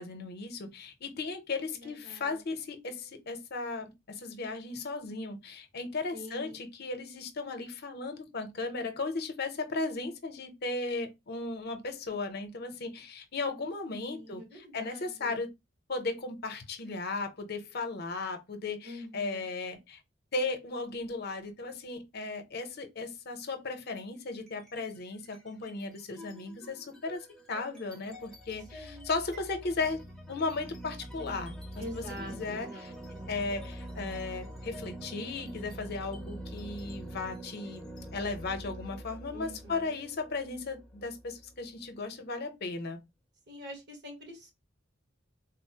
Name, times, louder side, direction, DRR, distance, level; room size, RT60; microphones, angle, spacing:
voice 1, 0.0-15.5 15.9-20.0 20.3-30.0 30.3-32.9 33.3-37.9 38.1-43.0, left 3 dB, 55° left, 0.7 m, -36 dB
voice 2, 1.8-2.4 6.1-6.6 14.0-15.4 18.8-19.4 28.7-29.1 31.8-33.3 39.3-39.9 43.5-44.5, equal, 60° right, 1.3 m, -45 dB
sound 1, 24.4-24.9 25.3-41.9, right 1 dB, 5° left, 0.6 m, -45 dB
3.7 x 2.0 x 2.7 m
head